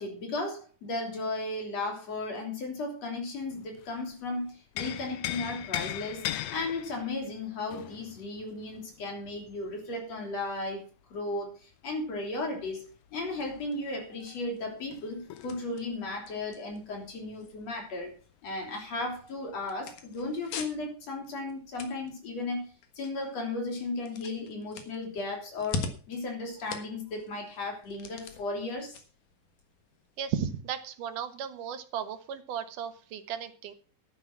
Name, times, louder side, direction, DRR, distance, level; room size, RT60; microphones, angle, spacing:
voice 1, 0.0-10.8 11.1-18.1 18.4-22.7 23.0-29.0, left 2 dB, 55° left, 2 dB, 4.3 m, -35 dB
sound 1, 3.4-4.1 4.5-10.0 11.9-17.7 18.0-18.1 18.5-19.2 20.0-20.1, left 13 dB, 70° left, 1.7 m, -40 dB
sound 2, 13.4-30.3, left 4 dB, 90° left, 3.1 m, -45 dB
voice 2, 30.2-33.7, right 8 dB, 85° right, 10 dB, 2.8 m, -35 dB
12.0 x 9.3 x 5.9 m, 0.38 s
omnidirectional pair, 3.6 m